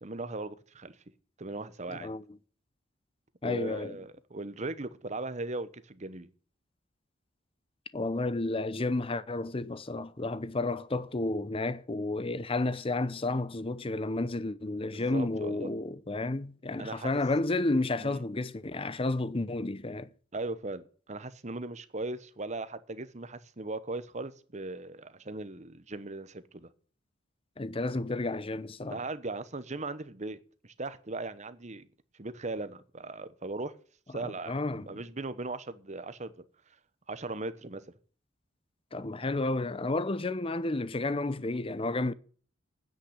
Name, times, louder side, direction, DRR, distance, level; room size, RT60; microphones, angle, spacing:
voice 1, 0.0-1.0 1.4-2.1 3.4-6.3 14.9-15.7 16.8-17.2 18.0-18.2 20.3-26.7 28.9-30.4 30.6-31.9 32.2-33.7 34.1-34.6 34.9-36.4 37.1-37.8, right 2 dB, 35° right, 1.1 m, -38 dB
voice 2, 1.9-2.2 3.4-4.0 7.9-20.1 27.6-29.0 34.5-34.9 38.9-42.1, left 2 dB, 30° left, 0.7 m, -31 dB
9.9 x 8.8 x 9.7 m
head